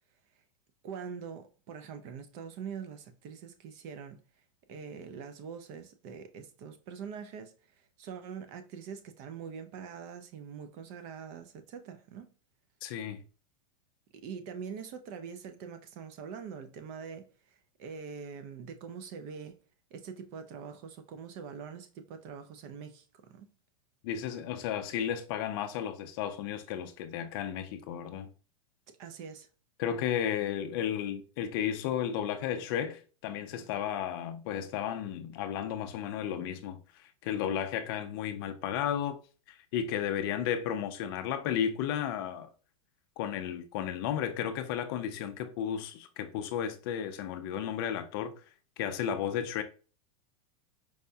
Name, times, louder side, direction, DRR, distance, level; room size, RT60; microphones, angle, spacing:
voice 1, 0.8-4.2 4.7-12.3 14.1-19.6 19.9-23.5 28.9-29.5, right 6 dB, 35° right, 0.5 m, -44 dB
voice 2, 12.8-13.2 24.0-28.3 29.8-39.2 39.5-42.5 43.2-48.3 48.8-49.6, left 9 dB, 40° left, 0.4 m, -33 dB
4.7 x 2.1 x 2.7 m
supercardioid pair, 155°, 18 cm